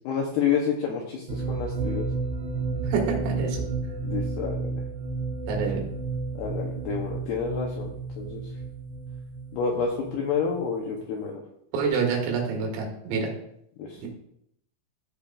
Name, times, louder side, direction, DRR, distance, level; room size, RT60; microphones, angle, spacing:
voice 1, 0.0-2.1 4.0-4.6 6.4-8.4 9.5-11.4 13.8-14.0, left 6 dB, 85° left, 0 dB, 2.3 m, -29 dB
sound 1, 1.3-10.9, right 3 dB, 70° right, 2.8 m, -32 dB
voice 2, 2.8-3.6 5.5-5.9 11.7-13.3 14.0-14.1, right 5 dB, 85° right, 1 dB, 4.5 m, -27 dB
14.5 x 6.9 x 2.4 m, 0.74 s
omnidirectional pair, 5.8 m